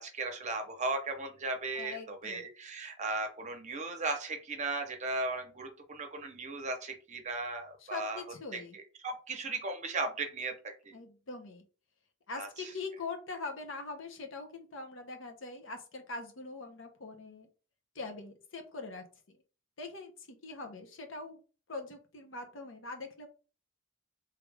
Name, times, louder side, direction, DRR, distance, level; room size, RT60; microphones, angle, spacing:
voice 1, 0.0-8.2 8.5-11.0 12.3-12.7, right 3 dB, 35° right, 5 dB, 0.7 m, -37 dB
voice 2, 1.8-2.4 7.8-8.8 10.9-11.6 12.3-17.5 17.9-19.0 19.8-21.4 21.7-23.3, left 3 dB, 75° left, 4 dB, 0.9 m, -42 dB
3.3 x 2.4 x 3.2 m, 0.34 s
head